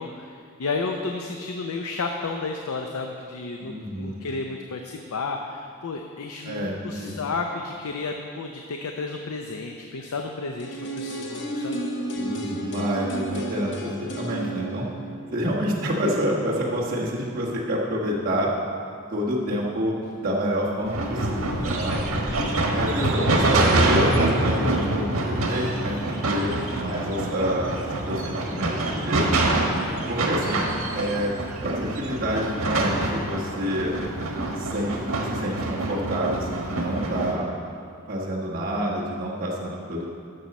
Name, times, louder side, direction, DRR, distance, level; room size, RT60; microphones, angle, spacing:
voice 1, 0.0-11.8 24.7-25.0, left 3 dB, 85° left, 3 dB, 0.6 m, -32 dB
voice 2, 3.6-4.2 6.4-7.2 12.1-14.9 15.3-18.5 19.1-19.9 20.2-22.1 22.7-29.3 30.1-30.7 30.9-31.3 31.6-33.9 34.5-35.0 35.3-37.5 38.1-40.0, equal, 40° right, -6 dB, 1.4 m, -28 dB
sound 1, 10.6-16.5 16.8-16.9, right 1 dB, 55° left, 0.8 m, -33 dB
sound 2, 20.8-37.3, right 2 dB, 80° right, 1.3 m, -25 dB
12.0 x 6.7 x 4.2 m, 2.3 s
head